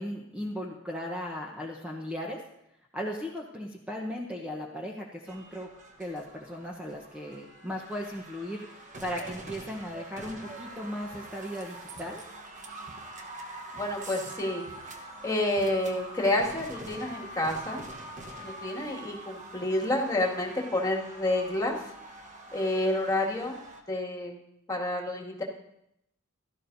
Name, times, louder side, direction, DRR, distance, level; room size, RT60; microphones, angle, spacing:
voice 1, 0.0-2.4 2.9-5.7 6.0-12.2, equal, 5° right, -1 dB, 1.0 m, -37 dB
sound 1, 5.3-23.8, right 2 dB, 35° right, 1.2 m, -45 dB
voice 2, 13.7-14.7 14.9-17.8 18.4-21.9 22.5-23.6 23.9-24.4 24.7-25.4, left 1 dB, 15° left, -2 dB, 2.2 m, -29 dB
16.5 x 13.0 x 2.7 m, 0.80 s
head